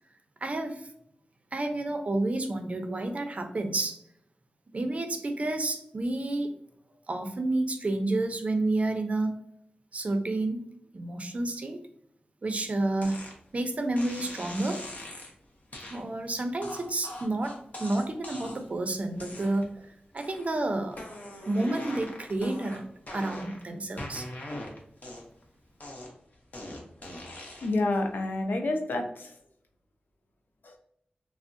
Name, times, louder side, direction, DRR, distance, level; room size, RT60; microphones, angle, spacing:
voice 1, 0.4-0.9 1.5-4.0 4.7-6.5 7.1-9.4 9.9-10.6 10.9-11.8 12.4-13.2 13.5-14.8 15.9-19.8 20.1-21.1 21.5-24.3, right 2 dB, 45° right, 6 dB, 0.5 m, -30 dB
sound 1, 13.0-13.4 14.0-15.3 15.7-16.0 16.6-18.7 19.2-19.8 20.2-20.6 20.9-23.6 24.0-25.4 25.8-27.8, left 1 dB, 55° left, 0.7 m, -42 dB
voice 2, 27.6-29.4 30.6-30.8, left 2 dB, 85° left, 3 dB, 0.5 m, -29 dB
3.4 x 2.0 x 2.5 m, 0.69 s
wide cardioid pair, 75°, 3 cm